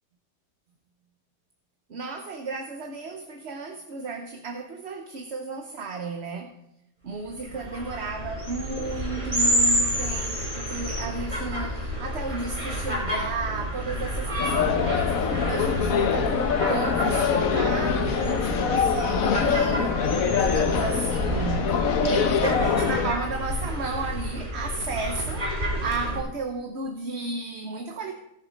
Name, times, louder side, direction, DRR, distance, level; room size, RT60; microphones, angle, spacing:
voice 1, 1.9-6.5 7.0-20.0 20.3-28.1, right 3 dB, 50° right, 4 dB, 1.2 m, -33 dB
sound 1, 7.3-26.2, equal, 25° right, 4.6 m, -29 dB
sound 2, 14.4-23.1, left 6 dB, 65° left, 1.3 m, -24 dB
17.0 x 7.4 x 5.2 m, 0.83 s
omnidirectional pair, 1.6 m